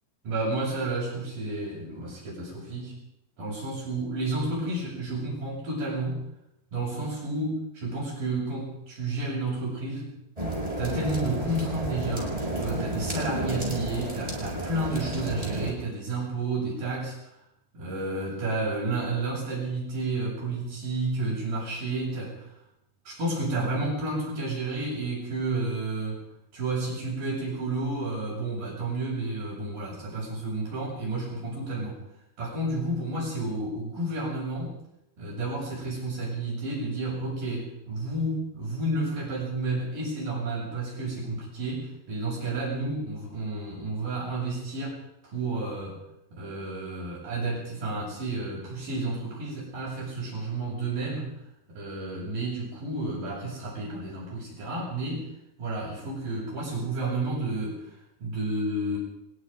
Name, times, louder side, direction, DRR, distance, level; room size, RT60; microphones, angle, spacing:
voice 1, 0.2-3.0 3.4-6.2 6.7-10.1 10.8-17.4 17.7-22.5 23.1-26.2 26.5-32.0 32.4-34.7 35.2-46.0 46.3-51.4 51.7-55.3 55.6-59.0, right 2 dB, 55° right, -7 dB, 9.2 m, -31 dB
sound 1, 10.4-15.7, right 1 dB, 10° right, 6.4 m, -31 dB
24.0 x 22.0 x 5.3 m, 0.81 s
omnidirectional pair, 4.7 m